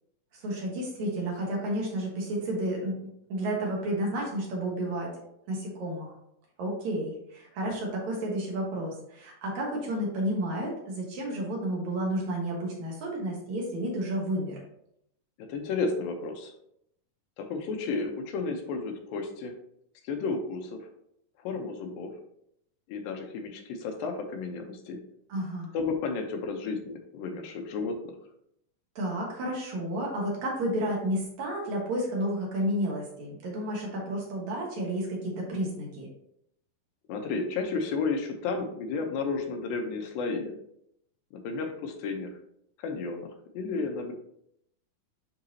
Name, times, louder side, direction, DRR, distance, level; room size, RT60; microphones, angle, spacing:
voice 1, 0.4-3.0 3.3-5.2 5.5-6.2 6.6-14.6 25.3-25.7 29.0-36.1, right 1 dB, 60° right, -2 dB, 2.6 m, -31 dB
voice 2, 15.5-16.5 17.4-19.5 20.1-20.8 21.4-22.1 22.9-25.0 25.7-28.1 37.1-40.5 41.3-42.3 42.8-43.3 43.5-44.1, left 4 dB, 90° left, 4 dB, 2.7 m, -32 dB
10.0 x 3.9 x 2.8 m, 0.74 s
omnidirectional pair, 4.0 m